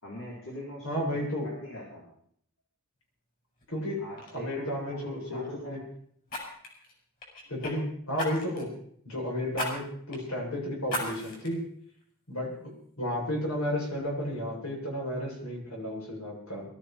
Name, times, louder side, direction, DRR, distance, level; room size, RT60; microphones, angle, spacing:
voice 1, 0.0-2.0 4.0-5.8, equal, 60° left, -5 dB, 4.4 m, -43 dB
voice 2, 0.8-1.5 3.7-4.0 4.3-5.8 7.5-8.8 9.0-11.6 12.3-16.7, equal, 80° left, -2 dB, 7.7 m, -33 dB
Fire, 3.6-3.8 4.2-4.4 6.3-7.7 8.2-8.7 9.5-9.7 10.1-10.2 10.9-11.5 12.0-12.1, left 1 dB, 40° left, 6.4 m, -35 dB
22.5 x 13.5 x 4.6 m, 0.64 s
head